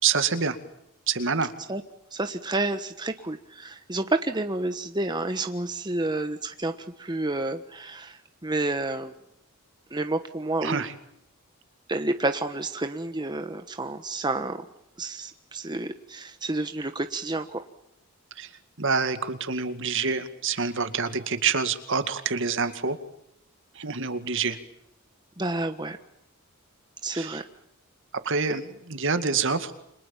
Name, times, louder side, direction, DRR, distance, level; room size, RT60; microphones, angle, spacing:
voice 1, 0.0-0.6 1.1-1.5 10.6-10.9 18.4-18.5 18.8-23.0 23.7-24.6 27.1-27.4 28.2-29.7, right 5 dB, 60° right, 9 dB, 2.2 m, -27 dB
voice 2, 2.1-6.7 7.0-9.1 9.9-10.8 11.9-14.6 15.0-17.6 25.4-26.0 27.0-27.4, right 2 dB, 20° right, 7 dB, 1.2 m, -30 dB
29.0 x 26.5 x 7.3 m, 0.79 s
head